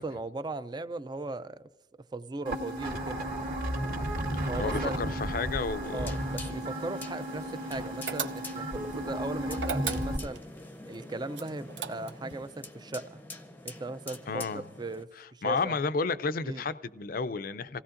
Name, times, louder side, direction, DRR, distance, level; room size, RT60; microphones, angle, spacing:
voice 1, 0.0-1.7 2.1-3.4 4.5-5.1 5.9-10.4 10.9-13.2 13.6-15.8 16.4-16.6, right 2 dB, 25° right, 0.4 m, -38 dB
sound 1, 2.5-10.2, right 1 dB, 55° right, 2.0 m, -34 dB
voice 2, 4.6-6.1 14.3-14.7 15.2-17.8, left 4 dB, 50° left, 0.5 m, -32 dB
sound 2, 5.8-15.0, left 2 dB, 10° left, 0.7 m, -45 dB
sound 3, 8.1-8.8 9.6-10.5 11.3-12.3, right 6 dB, 70° right, 0.7 m, -35 dB
27.5 x 16.5 x 2.5 m
head